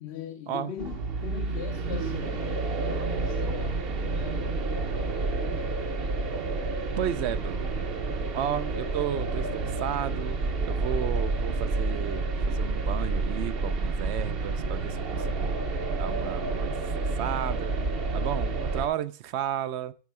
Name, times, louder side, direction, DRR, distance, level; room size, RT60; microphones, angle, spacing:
voice 1, 0.0-4.6, left 9 dB, 75° left, 1.0 m, -40 dB
sound 1, 0.8-18.9, right 3 dB, 60° right, 1.1 m, -29 dB
voice 2, 7.0-7.9 8.3-10.4 10.6-15.6 16.0-17.8 18.1-19.9, right 10 dB, 80° right, 0.9 m, -33 dB
9.6 x 5.4 x 4.7 m
omnidirectional pair, 1.1 m